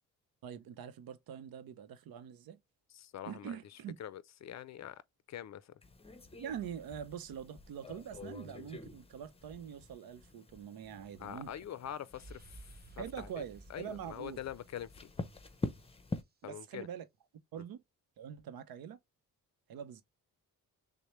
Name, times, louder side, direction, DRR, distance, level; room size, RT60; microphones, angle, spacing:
voice 1, 0.4-2.6 3.2-4.0 6.4-11.5 13.0-14.4 16.4-17.1 17.5-17.8 18.2-19.0 19.7-20.0, right 8 dB, 80° right, 0.7 m, -44 dB
voice 2, 2.9-5.0 5.3-5.8 11.2-13.4 13.7-15.1 16.4-16.9, left 10 dB, 50° left, 0.5 m, -45 dB
sound 1, 5.8-16.2, left 2 dB, 15° left, 0.7 m, -46 dB
sound 2, 12.1-15.9, right 2 dB, 30° right, 0.7 m, -55 dB
6.3 x 2.1 x 3.0 m
cardioid pair, 80°, 35 cm